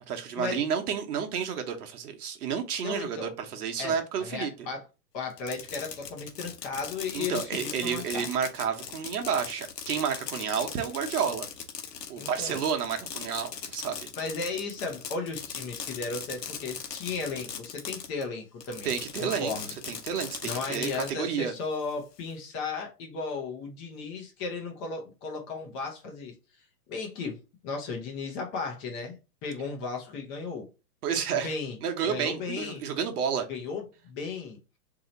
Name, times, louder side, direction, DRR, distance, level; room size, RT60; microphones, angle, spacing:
voice 1, 0.1-4.5 7.1-11.5 12.1-14.1 18.8-19.5 19.9-21.5 31.0-31.5 31.8-33.5, right 7 dB, 65° right, 1.0 m, -30 dB
voice 2, 2.8-3.3 3.8-4.8 5.1-8.3 12.2-12.6 14.2-18.9 19.2-19.7 20.4-26.3 26.9-29.2 29.4-30.7 31.3-31.8 32.1-32.8 33.5-34.6, left 4 dB, 25° left, 0.7 m, -35 dB
Fireworks, 5.3-18.2 18.6-21.1, left 7 dB, 85° left, 1.0 m, -39 dB
3.1 x 2.8 x 3.9 m
hypercardioid pair, 140°, 48 cm